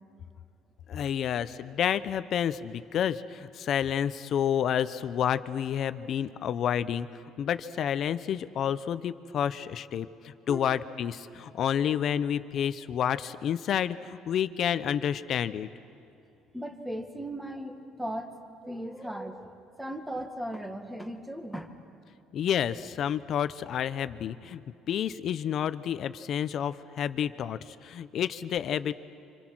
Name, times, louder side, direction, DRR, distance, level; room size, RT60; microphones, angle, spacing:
voice 1, 0.9-15.7 22.3-28.9, left 9 dB, 50° left, 13 dB, 0.8 m, -30 dB
voice 2, 10.5-10.8 16.5-18.3 18.6-19.5 19.8-21.7, equal, 5° right, 5 dB, 1.8 m, -37 dB
30.0 x 26.0 x 6.2 m, 2.9 s
cardioid pair, 140°, 0 cm